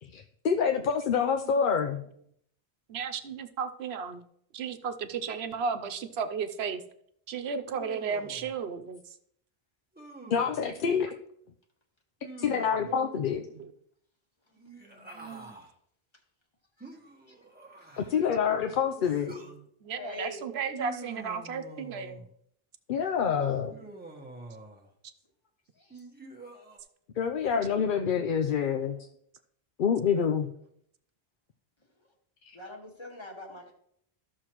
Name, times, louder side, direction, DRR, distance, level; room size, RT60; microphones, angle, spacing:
voice 1, 0.0-2.0 10.3-11.1 12.4-13.5 18.0-19.3 22.9-23.7 27.2-29.0 29.8-30.5 32.4-32.6, left 7 dB, 60° left, 6 dB, 0.7 m, -27 dB
voice 2, 2.9-4.2 4.5-6.8 7.3-9.0 10.7-10.8 12.8-13.2 13.5-13.7 14.8-15.6 18.6-18.7 19.5-22.2 23.5-23.9 27.6-27.7 28.5-28.6, right 6 dB, 80° right, 8 dB, 1.0 m, -35 dB
Human voice, 7.7-8.5 9.9-10.6 12.2-13.0 14.6-15.7 16.8-18.3 19.0-19.6 20.7-22.3 23.7-24.9 25.9-26.8, right 2 dB, 10° right, 1.3 m, -46 dB
voice 3, 17.8-18.3 19.9-20.4 25.8-26.0 32.5-33.7, left 2 dB, 25° left, 1 dB, 1.7 m, -44 dB
14.0 x 6.5 x 3.0 m, 0.70 s
omnidirectional pair, 1.1 m